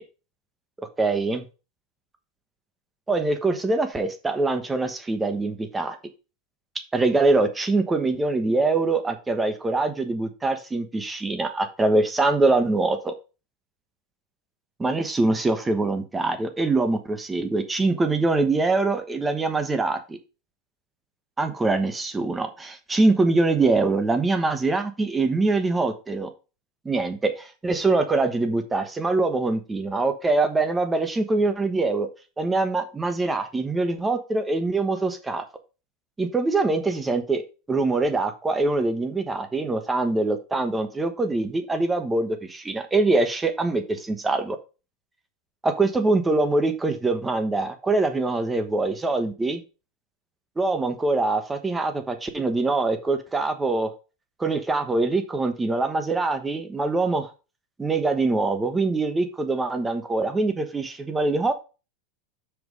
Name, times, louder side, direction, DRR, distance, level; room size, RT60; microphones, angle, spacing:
voice 1, 1.0-1.4 3.1-6.0 6.9-13.1 14.8-20.2 21.4-26.3 26.8-32.1 32.4-35.4 36.2-37.4 37.7-44.6 45.6-49.6 50.6-53.9 54.4-57.3 57.8-61.5, right 3 dB, 10° right, 8 dB, 1.2 m, -24 dB
5.9 x 5.2 x 5.4 m, 0.32 s
supercardioid pair, 130°, 0 cm